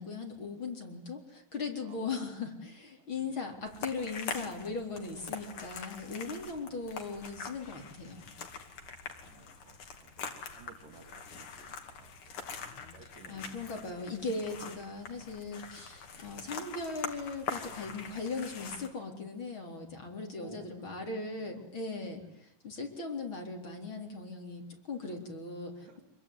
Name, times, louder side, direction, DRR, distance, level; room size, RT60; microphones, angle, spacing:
voice 1, 0.0-8.2 13.3-26.0, left 3 dB, 35° left, 2 dB, 4.6 m, -39 dB
voice 2, 1.8-2.1 3.0-3.4 6.5-6.8 8.9-12.5 12.9-13.7 16.1-16.5 20.4-20.9 21.3-21.7 22.3-22.4 25.1-25.2 25.8-26.0, right 4 dB, 80° right, 4 dB, 4.6 m, -56 dB
sound 1, 3.7-18.9, left 5 dB, 65° left, 3.9 m, -44 dB
26.0 x 23.5 x 9.7 m, 0.76 s
omnidirectional pair, 3.8 m